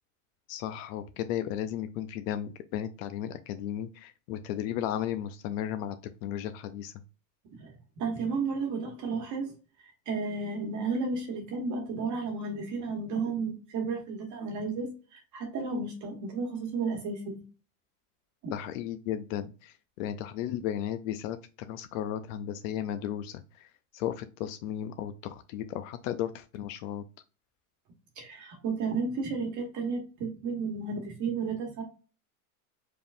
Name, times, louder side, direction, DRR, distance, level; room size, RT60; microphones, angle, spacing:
voice 1, 0.5-6.0 6.2-6.9 18.5-21.4 21.7-23.4 23.9-27.0, left 10 dB, 60° left, 10 dB, 0.6 m, -34 dB
voice 2, 8.0-9.5 10.1-17.4 18.4-18.5 28.2-31.8, right 4 dB, 40° right, 2 dB, 1.3 m, -33 dB
4.8 x 3.5 x 2.5 m, 0.34 s
supercardioid pair, 125°, 46 cm